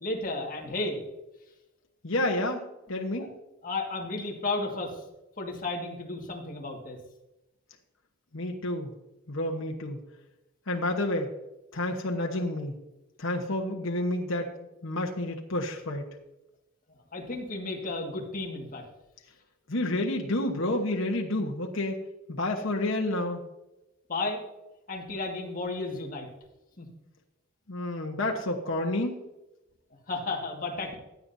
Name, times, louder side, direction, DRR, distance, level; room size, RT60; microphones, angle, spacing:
voice 1, 0.0-1.0 3.2-3.3 3.6-5.0 5.4-7.0 17.1-18.9 24.1-24.4 24.9-26.3 26.8-26.9 30.1-30.9, left 2 dB, 40° left, 1 dB, 1.9 m, -33 dB
voice 2, 2.0-2.6 2.9-3.3 8.3-8.9 9.3-10.0 10.7-11.3 11.7-12.8 13.2-14.5 14.8-16.1 19.7-22.0 22.3-23.4 27.7-29.2, left 1 dB, 70° left, 1 dB, 1.1 m, -29 dB
16.0 x 9.5 x 2.7 m, 0.97 s
head